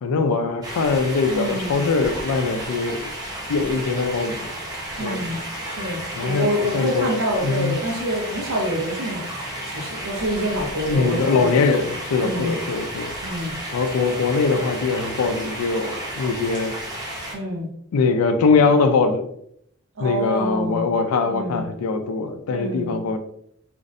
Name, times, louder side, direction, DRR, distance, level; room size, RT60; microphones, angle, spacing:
voice 1, 0.0-3.1 3.5-4.5 5.0-5.2 6.2-7.1 7.4-7.8 10.9-13.1 13.7-16.7 17.9-19.2 20.0-23.2, left 4 dB, 80° left, 8 dB, 0.3 m, -22 dB
sound 1, 0.6-17.3, right 1 dB, 20° right, 0.6 m, -33 dB
voice 2, 1.3-1.8 5.0-11.5 12.2-12.6 13.2-13.6 17.3-17.7 20.0-20.8 21.2-21.6 22.5-23.0, equal, 70° right, -1 dB, 0.7 m, -27 dB
2.5 x 2.1 x 2.4 m, 0.71 s
head